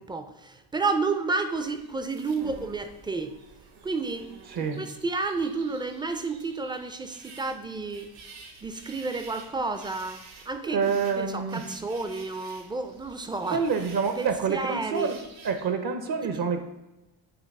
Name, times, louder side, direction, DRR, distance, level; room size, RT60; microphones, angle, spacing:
voice 1, 0.0-3.4 3.8-8.1 8.6-13.6 14.2-15.1 16.3-16.4, right 3 dB, 10° right, 8 dB, 0.3 m, -31 dB
sound 1, 1.5-15.7, right 4 dB, 75° right, 1.2 m, -50 dB
voice 2, 4.5-4.8 10.6-11.7 13.5-15.2 15.4-16.6, right 5 dB, 50° right, 7 dB, 0.7 m, -27 dB
8.7 x 3.0 x 5.2 m, 1.0 s
cardioid pair, 130°, 47 cm